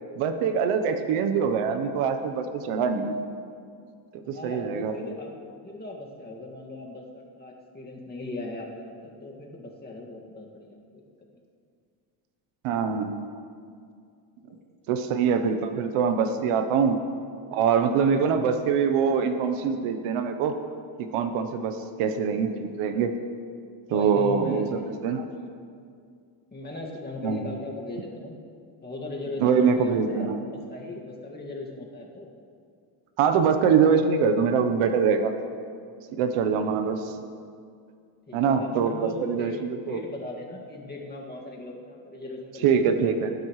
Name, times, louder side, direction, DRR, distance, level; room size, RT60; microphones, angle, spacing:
voice 1, 0.2-3.2 4.1-4.9 12.6-13.1 14.9-17.0 17.5-20.5 21.0-23.1 23.9-24.7 25.0-25.2 27.2-27.5 29.4-30.4 33.2-35.3 36.1-37.0 38.3-40.0 42.6-43.3, right 6 dB, 85° right, 8 dB, 1.0 m, -24 dB
voice 2, 4.2-5.3 5.6-11.0 14.5-14.6 23.9-24.9 25.4-25.5 26.5-28.4 28.8-32.3 36.8-37.1 38.3-39.6 39.9-43.3, left 2 dB, 20° left, -2 dB, 2.0 m, -38 dB
19.5 x 10.5 x 3.2 m, 2.3 s
cardioid pair, 110°, 50 cm